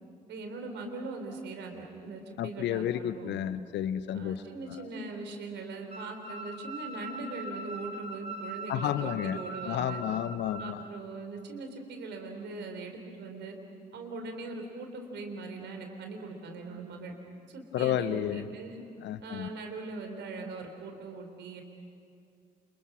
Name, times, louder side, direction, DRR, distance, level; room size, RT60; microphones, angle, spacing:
voice 1, 0.3-3.4 4.1-10.0 10.6-13.6 13.9-17.1 17.5-18.8 19.2-21.6, right 3 dB, 60° right, 4 dB, 3.9 m, -41 dB
voice 2, 2.4-4.4 8.7-9.4 9.6-10.8 17.7-18.5 19.0-19.5, left 11 dB, 60° left, 14 dB, 0.9 m, -31 dB
sound 1, 5.9-10.7, right 2 dB, 35° right, 2.4 m, -41 dB
28.5 x 27.0 x 6.2 m, 2.4 s
figure-of-eight pair, 45°, 21 cm